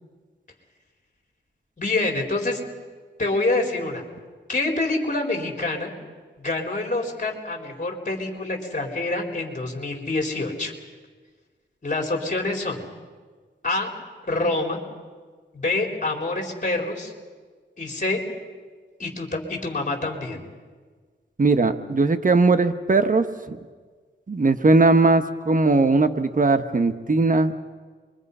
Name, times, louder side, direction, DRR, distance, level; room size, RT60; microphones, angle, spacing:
voice 1, 1.8-2.6 3.2-4.0 4.5-5.9 6.4-10.7 11.8-12.8 13.6-13.9 14.3-14.8 15.5-17.1 17.8-18.2 19.0-20.5, left 2 dB, 40° left, 2 dB, 4.1 m, -26 dB
voice 2, 21.4-23.6 24.3-27.5, right 3 dB, 45° right, 9 dB, 1.2 m, -19 dB
28.5 x 23.0 x 5.6 m, 1.5 s
wide cardioid pair, 85°, 20 cm